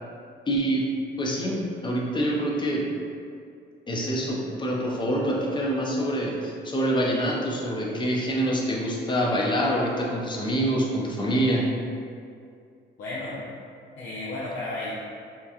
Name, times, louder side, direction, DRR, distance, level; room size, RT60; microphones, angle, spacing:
voice 1, 0.5-0.8 1.2-2.9 3.9-11.6, right 1 dB, 25° left, -2 dB, 0.5 m, -26 dB
voice 2, 13.0-13.4 14.0-14.9, left 2 dB, 75° left, -10 dB, 0.6 m, -33 dB
2.8 x 2.4 x 2.4 m, 2.3 s
cardioid pair, 90°, 20 cm